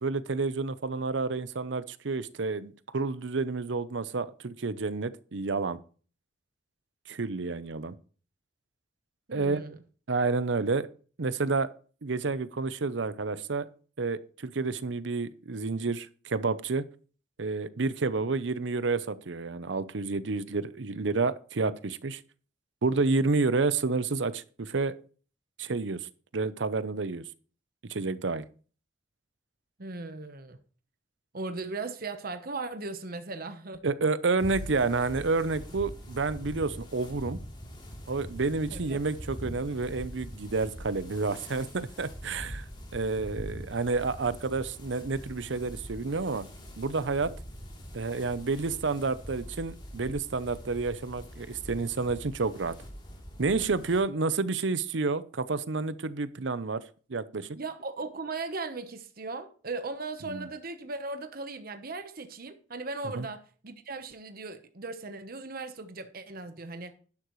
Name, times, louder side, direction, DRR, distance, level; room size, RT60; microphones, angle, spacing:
voice 1, 0.0-5.8 7.1-7.9 9.3-9.6 10.1-10.9 11.2-11.7 12.0-13.7 14.0-16.8 17.4-22.2 22.8-24.9 25.6-26.1 26.3-27.2 27.9-28.4 33.8-37.4 38.1-42.6 42.9-46.5 46.8-47.3 47.9-52.7 53.4-56.8 57.1-57.5 60.3-60.5 63.2-63.3, right 3 dB, 80° right, 0.7 m, -29 dB
voice 2, 9.3-9.8 29.8-30.6 31.3-33.8 38.7-39.0 57.5-66.9, right 3 dB, 55° right, 1.0 m, -38 dB
sound 1, 34.4-54.0, equal, 25° left, 3.2 m, -43 dB
11.5 x 10.5 x 3.1 m
head